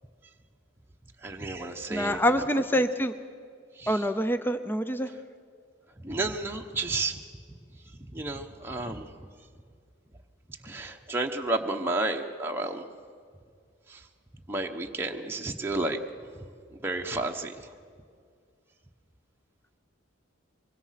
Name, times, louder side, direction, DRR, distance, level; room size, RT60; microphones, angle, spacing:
voice 1, 1.2-2.8 3.8-4.0 6.0-7.2 8.1-9.2 10.6-12.9 13.9-14.0 14.5-16.0 16.7-17.7, right 2 dB, 10° right, 1 dB, 1.0 m, -32 dB
voice 2, 1.9-3.1 3.9-5.1, equal, 10° left, 10 dB, 0.6 m, -26 dB
24.0 x 23.5 x 5.8 m, 2.2 s
head